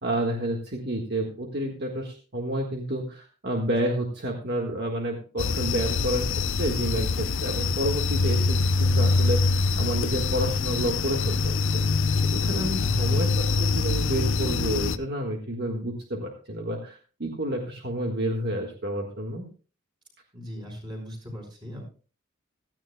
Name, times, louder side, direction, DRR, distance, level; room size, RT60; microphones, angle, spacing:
voice 1, 0.0-11.6 11.9-19.4, right 1 dB, 50° right, 1 dB, 1.6 m, -30 dB
sound 1, 5.4-15.0, left 4 dB, 60° left, 0.6 m, -24 dB
voice 2, 12.8-13.4 20.3-21.8, equal, 20° right, 1 dB, 4.7 m, -39 dB
17.0 x 13.5 x 2.3 m, 0.36 s
head